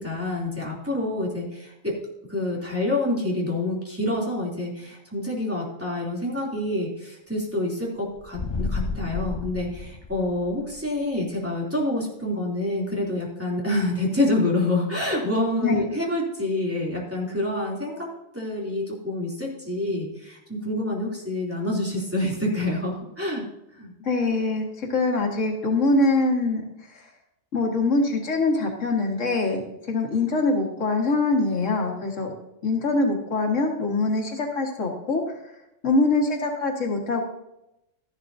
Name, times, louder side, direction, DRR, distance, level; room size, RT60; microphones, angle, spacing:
voice 1, 0.0-2.0 2.3-18.1 18.3-23.4 23.8-23.9, left 1 dB, 10° right, -4 dB, 2.9 m, -27 dB
sound 1, 8.2-10.7, left 3 dB, 35° left, 0.4 m, -31 dB
voice 2, 24.0-26.6 26.9-27.0 27.5-29.6 29.9-32.3 32.6-35.4 35.8-37.3, left 3 dB, 90° left, 1 dB, 2.1 m, -23 dB
13.0 x 11.5 x 2.7 m, 0.88 s
omnidirectional pair, 1.2 m